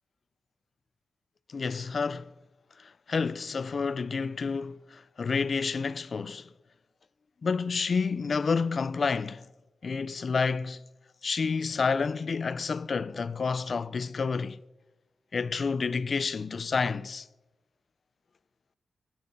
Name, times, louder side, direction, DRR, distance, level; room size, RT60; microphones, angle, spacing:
voice 1, 1.5-2.3 2.8-6.5 7.4-9.4 9.8-10.8 11.2-14.6 15.3-17.3, left 5 dB, 40° left, 0.4 m, -29 dB
16.5 x 11.0 x 5.3 m
wide cardioid pair, 165°, 0 cm